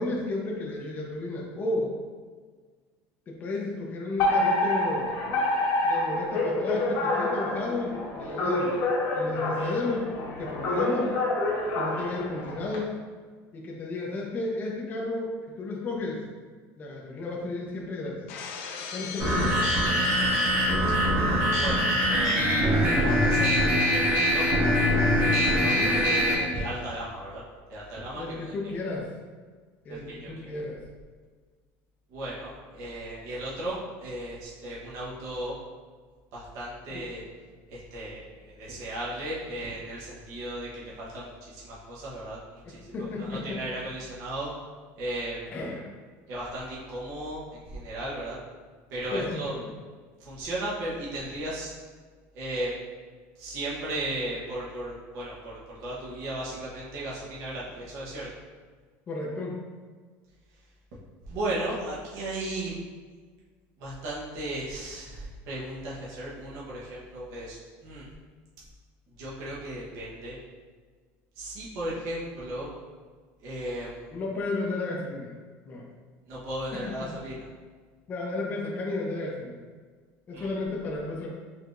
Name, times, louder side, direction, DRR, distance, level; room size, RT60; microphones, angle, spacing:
voice 1, 0.0-1.9 3.3-5.1 5.8-8.8 9.1-10.1 10.4-11.2 11.8-13.0 13.5-16.2 16.8-18.3 18.9-19.6 25.5-26.0 28.1-29.1 29.8-30.8 36.9-37.1 42.6-43.6 45.5-45.8 49.1-49.7 59.1-59.5 74.1-75.3 75.7-75.8 76.7-77.1 78.1-79.6 80.3-81.3, left 2 dB, 25° left, -2 dB, 0.6 m, -33 dB
Alarm, 4.2-12.8, left 2 dB, 65° left, 1.2 m, -27 dB
Shatter, 18.3-21.0, left 6 dB, 85° left, 0.5 m, -39 dB
sound 1, 19.2-26.3, equal, 35° right, 1.4 m, -23 dB
voice 2, 21.5-24.4 25.2-27.4 27.7-28.5 29.9-30.5 32.1-35.5 36.3-37.2 37.7-44.5 45.0-45.4 46.3-48.4 48.9-49.5 50.2-51.7 52.3-52.7 53.4-58.3 61.2-62.8 63.8-68.1 69.2-70.4 71.4-72.7 73.4-74.1 76.3-77.4 80.3-80.5, right 1 dB, 55° right, -6 dB, 1.1 m, -35 dB
4.5 x 3.3 x 2.5 m, 1.5 s
cardioid pair, 155°, 7 cm